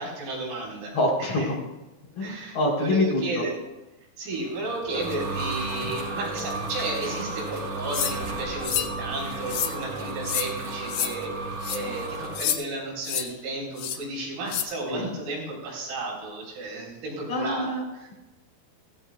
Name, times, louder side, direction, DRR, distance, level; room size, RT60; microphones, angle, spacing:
voice 1, 0.0-1.5 2.2-3.6 4.2-17.7 17.9-18.1, right 2 dB, 90° right, -3 dB, 7.0 m, -33 dB
voice 2, 0.9-1.5 2.2-3.4 11.7-11.8 14.9-15.1 17.3-17.8, left 2 dB, 35° left, -2 dB, 4.0 m, -26 dB
sound 1, 4.5-12.4, right 2 dB, 60° right, 2.0 m, -33 dB
sound 2, 7.9-8.2 8.6-8.9 9.5-9.7 10.2-10.5 10.9-11.1 11.6-11.8 12.4-12.6 13.0-13.3 13.8-14.0 14.5-14.7, left 10 dB, 75° left, 2.5 m, -28 dB
17.5 x 16.0 x 2.3 m, 1.0 s
omnidirectional pair, 5.7 m